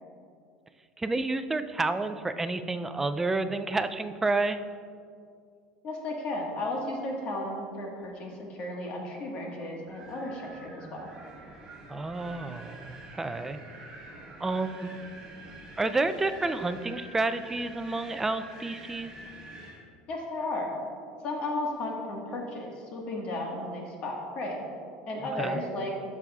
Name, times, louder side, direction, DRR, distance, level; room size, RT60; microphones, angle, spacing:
voice 1, 1.0-4.6 11.9-13.6 14.4-15.0 15.8-19.1 25.4-25.6, right 3 dB, 10° right, 10 dB, 0.3 m, -30 dB
voice 2, 5.8-11.1 20.1-20.7 21.2-24.6 25.1-25.9, left 1 dB, 40° left, 0 dB, 1.4 m, -34 dB
Wind, 9.9-19.8, right 1 dB, 25° right, 1.6 m, -47 dB
14.0 x 6.1 x 2.3 m, 2.3 s
cardioid pair, 145°, 3 cm